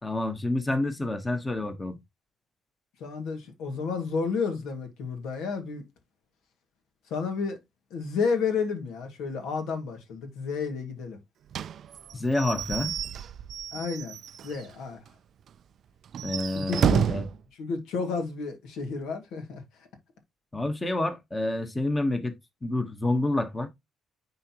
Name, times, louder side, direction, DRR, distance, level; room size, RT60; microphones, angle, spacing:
voice 1, 0.0-2.0 12.1-12.9 16.2-17.2 20.5-22.3 22.6-23.7, left 2 dB, 15° left, 1.1 m, -28 dB
voice 2, 3.0-5.8 7.1-7.6 7.9-11.2 13.7-14.2 14.4-15.0 16.5-17.1 17.6-19.6, left 5 dB, 85° left, 1.9 m, -31 dB
Slam / Squeak / Wood, 11.5-14.7 15.1-15.2 15.5-15.6 16.1-17.4, right 8 dB, 55° right, 0.3 m, -30 dB
9.8 x 3.9 x 2.9 m
cardioid pair, 135°, 0 cm